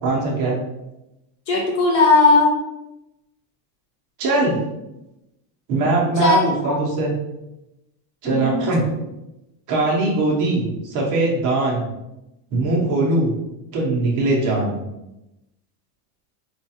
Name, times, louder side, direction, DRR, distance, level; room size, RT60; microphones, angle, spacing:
voice 1, 0.0-0.6 4.2-4.6 5.7-7.1 8.2-8.8 9.7-11.9 12.5-13.3 13.7-14.8, right 2 dB, 40° right, -3 dB, 0.9 m, -21 dB
voice 2, 1.5-2.5 6.2-6.8 8.2-8.7, left 3 dB, 75° left, -2 dB, 1.3 m, -17 dB
4.4 x 2.4 x 2.8 m, 0.93 s
cardioid pair, 175°, 49 cm